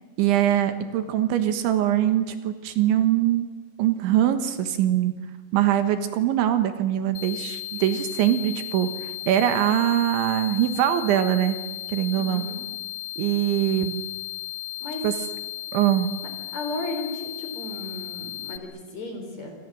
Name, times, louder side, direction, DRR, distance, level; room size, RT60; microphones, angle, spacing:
voice 1, 0.2-3.5 3.8-5.1 5.5-11.6 11.9-12.5 13.2-14.0 15.0-15.1 15.7-16.1, right 11 dB, 75° right, 9 dB, 3.6 m, -22 dB
sound 1, 7.2-18.6, left 15 dB, 60° left, 2.8 m, -35 dB
voice 2, 12.2-12.6 14.8-15.1 16.5-19.5, left 2 dB, 35° left, 4 dB, 5.2 m, -34 dB
27.0 x 26.5 x 7.7 m, 1.2 s
omnidirectional pair, 5.7 m